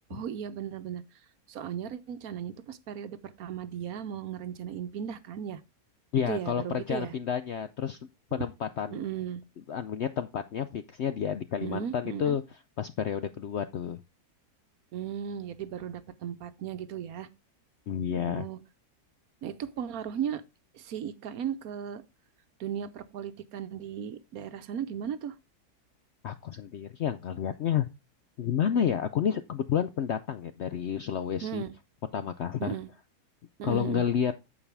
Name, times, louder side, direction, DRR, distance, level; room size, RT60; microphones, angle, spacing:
voice 1, 0.1-1.0 1.5-5.6 6.3-7.1 8.9-9.4 11.6-12.4 14.9-17.3 18.1-18.6 19.4-20.4 20.7-22.0 22.6-25.3 31.4-31.7 32.6-32.9 33.6-34.0, right 9 dB, 70° right, 1.2 m, -36 dB
voice 2, 6.1-8.0 8.3-9.0 9.7-12.4 12.8-14.0 17.9-18.5 26.2-27.9 28.4-31.6 32.1-32.7 33.6-34.3, left 8 dB, 70° left, 0.6 m, -30 dB
14.0 x 4.8 x 3.4 m
omnidirectional pair, 1.7 m